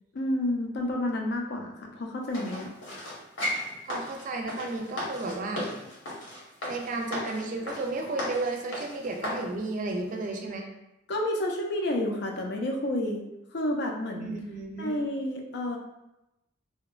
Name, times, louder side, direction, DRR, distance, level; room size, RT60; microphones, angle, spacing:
voice 1, 0.1-2.7 11.1-13.2 13.5-14.3 14.8-15.8, left 1 dB, 60° left, 1 dB, 0.4 m, -30 dB
sound 1, 2.3-9.5 10.0-10.1, left 1 dB, 85° left, 1.0 m, -36 dB
voice 2, 3.8-5.7 6.7-10.7 14.2-15.0, right 2 dB, 45° right, 2 dB, 0.3 m, -33 dB
2.7 x 2.1 x 2.3 m, 0.91 s
head